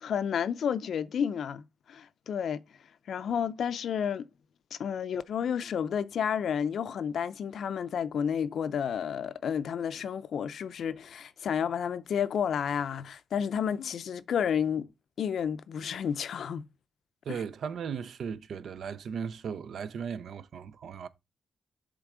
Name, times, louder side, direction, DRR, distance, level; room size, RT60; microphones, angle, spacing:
voice 1, 0.0-2.6 3.1-4.3 4.7-14.9 15.2-16.6 17.3-17.4, left 8 dB, 70° left, 0.5 m, -31 dB
voice 2, 17.3-21.1, right 6 dB, 70° right, 0.6 m, -37 dB
7.5 x 3.4 x 4.8 m
cardioid pair, 85°, 0 cm